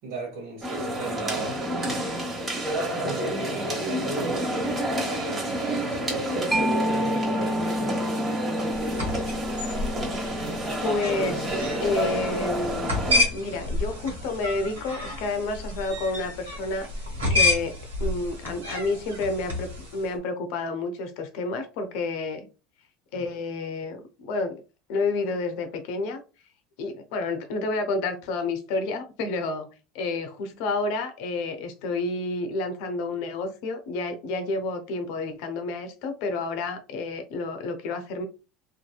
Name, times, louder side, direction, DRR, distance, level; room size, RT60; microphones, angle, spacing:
voice 1, 0.0-1.6 3.0-6.4 6.9-8.0 23.1-23.3, right 3 dB, 65° right, 1.0 m, -37 dB
sound 1, 0.6-13.2, right 1 dB, 25° right, 1.2 m, -29 dB
Mallet percussion, 6.5-13.8, equal, 5° right, 0.5 m, -31 dB
sound 2, 8.7-20.1, left 2 dB, 90° right, 1.1 m, -30 dB
voice 2, 10.8-16.9 17.3-22.5 23.1-24.6 24.9-26.2 26.8-29.7 29.9-38.3, left 3 dB, 65° left, 0.6 m, -30 dB
2.7 x 2.6 x 2.3 m
hypercardioid pair, 80°, 0 cm